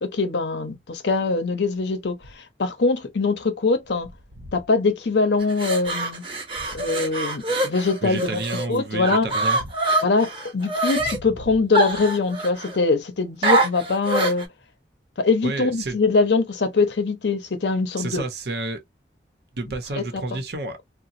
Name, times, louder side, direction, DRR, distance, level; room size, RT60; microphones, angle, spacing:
voice 1, 0.0-4.1 4.5-6.2 6.7-8.4 8.7-9.3 10.0-14.5 15.2-18.2 19.9-20.4, left 3 dB, 75° left, 0.7 m, -23 dB
sound 1, 5.4-8.7 9.0-11.2 11.7-12.8 13.4-14.4, right 2 dB, 30° right, 0.9 m, -24 dB
voice 2, 8.0-9.6 15.4-16.0 18.0-18.8 19.5-20.8, right 2 dB, 65° right, 0.8 m, -30 dB
2.9 x 2.1 x 2.5 m
head